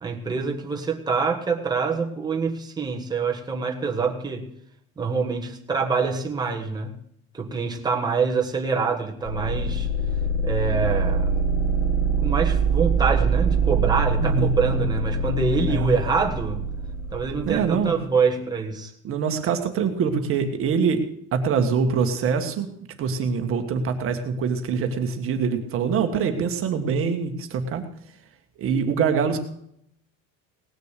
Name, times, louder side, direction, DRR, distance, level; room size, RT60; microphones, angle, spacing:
voice 1, 0.0-4.5 5.0-6.9 7.3-9.9 10.4-11.3 12.2-16.6 17.1-18.9, right 5 dB, 10° right, 1 dB, 1.4 m, -25 dB
sound 1, 9.3-18.0, right 4 dB, 25° left, 2.1 m, -24 dB
voice 2, 14.2-14.5 15.7-15.9 17.5-18.0 19.0-21.0 21.3-22.7 23.0-27.8 28.6-29.4, right 6 dB, 35° right, 6 dB, 1.6 m, -24 dB
18.5 x 6.6 x 8.3 m, 0.70 s
cardioid pair, 170°, 40 cm